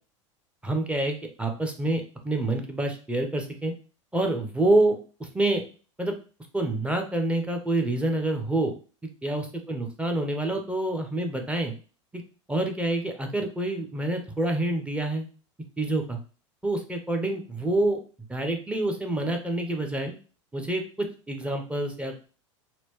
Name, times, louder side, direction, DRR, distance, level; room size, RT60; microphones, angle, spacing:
voice 1, 0.6-3.7 4.1-5.6 6.0-6.1 6.5-8.7 9.2-11.7 12.1-12.2 12.5-15.3 15.8-16.2 16.6-18.0 18.3-20.2 20.5-22.2, right 2 dB, 5° right, 4 dB, 0.8 m, -27 dB
4.2 x 2.2 x 3.1 m, 0.36 s
hypercardioid pair, 85°, 16 cm